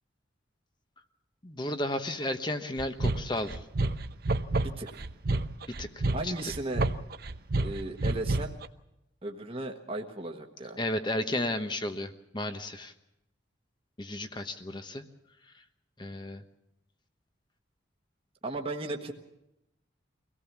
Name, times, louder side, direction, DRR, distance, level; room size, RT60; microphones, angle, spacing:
voice 1, 1.4-3.6 5.7-6.5 10.8-12.9 14.0-15.0 16.0-16.4, left 1 dB, 25° left, 7 dB, 1.1 m, -33 dB
sound 1, 2.8-8.7, right 2 dB, 50° right, 0.8 m, -29 dB
voice 2, 4.6-5.0 6.1-6.9 7.6-8.6 9.2-10.8 18.4-19.1, right 2 dB, 30° right, 2 dB, 1.4 m, -36 dB
24.5 x 17.5 x 7.3 m, 0.86 s
head